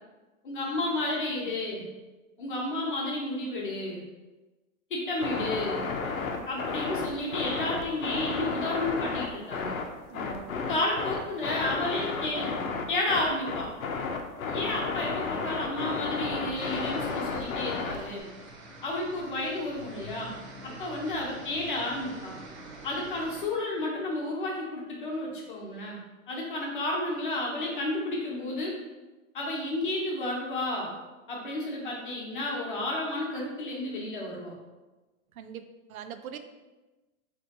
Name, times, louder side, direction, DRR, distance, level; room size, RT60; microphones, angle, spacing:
voice 1, 0.4-1.8 2.4-4.0 4.9-5.9 6.4-9.8 10.7-12.5 12.9-13.7 14.5-18.3 18.8-20.3 20.6-22.4 22.8-26.0 26.3-28.7 29.3-30.9 31.3-34.5, left 2 dB, 40° left, -2 dB, 0.9 m, -31 dB
sound 1, 5.2-18.2, left 4 dB, 85° left, 0.8 m, -32 dB
voice 2, 10.1-10.7 20.6-20.8 35.4-35.6 35.9-36.4, right 9 dB, 90° right, 9 dB, 0.6 m, -42 dB
sound 2, 16.5-23.5, right 2 dB, 55° right, 0.9 m, -46 dB
4.1 x 3.1 x 2.9 m, 1.1 s
hypercardioid pair, 180°, 41 cm